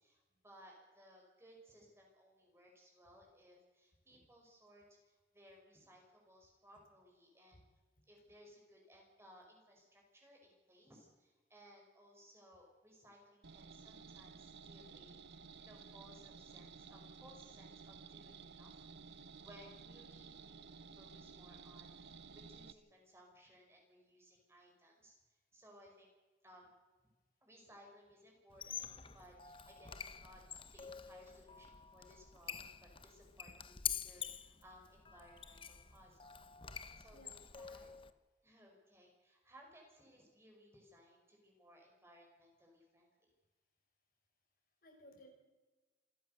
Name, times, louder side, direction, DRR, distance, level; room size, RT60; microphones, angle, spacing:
voice 1, 0.0-7.6 8.1-15.2 15.6-18.7 19.0-26.1 26.4-26.8 27.4-30.4 30.7-36.4 36.6-37.9 38.4-43.3, equal, 15° right, 0 dB, 5.5 m, -62 dB
sound 1, 13.4-22.7, right 5 dB, 75° right, 0.9 m, -54 dB
Squeak, 28.5-38.1, left 8 dB, 30° left, 0.9 m, -47 dB
voice 2, 36.7-37.4 37.7-37.9 44.8-45.3, equal, 55° left, 3 dB, 4.5 m, -60 dB
27.5 x 14.5 x 6.7 m, 1.2 s
head